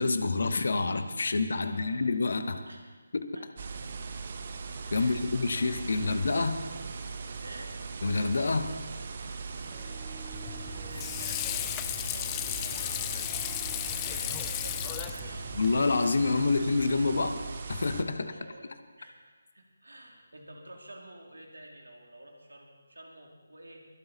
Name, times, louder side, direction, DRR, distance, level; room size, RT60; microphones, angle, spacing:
voice 1, 0.0-2.6 3.1-3.3 4.9-6.7 8.0-8.8 15.5-17.4 17.7-18.3, left 3 dB, 55° left, 9 dB, 1.0 m, -27 dB
voice 2, 1.6-2.0 2.6-2.9 3.3-3.7 4.9-5.2 6.6-6.9 7.4-7.8 10.6-15.6 16.2-16.3 18.0-23.8, right 1 dB, 70° right, 0 dB, 3.1 m, -50 dB
sound 1, 3.6-18.0, right 4 dB, 40° right, 1.0 m, -39 dB
Harp, 9.5-16.9, right 3 dB, 5° right, 2.7 m, -54 dB
Water / Sink (filling or washing), 10.3-15.8, left 16 dB, 15° left, 0.4 m, -35 dB
23.5 x 8.9 x 4.2 m, 1.4 s
figure-of-eight pair, 150°, 0 cm